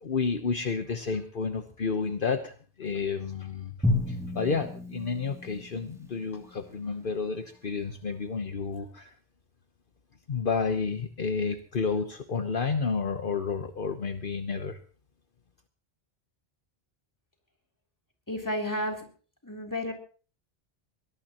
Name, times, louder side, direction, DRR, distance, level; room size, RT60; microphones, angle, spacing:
voice 1, 0.0-3.7 4.1-9.1 10.3-14.8, left 5 dB, 60° left, 7 dB, 1.2 m, -31 dB
Drum, 3.8-6.8, left 2 dB, 5° right, 2.6 m, -32 dB
voice 2, 18.3-19.1 19.4-19.9, left 1 dB, 20° left, 1 dB, 3.5 m, -31 dB
22.5 x 18.5 x 3.0 m, 0.40 s
omnidirectional pair, 1.0 m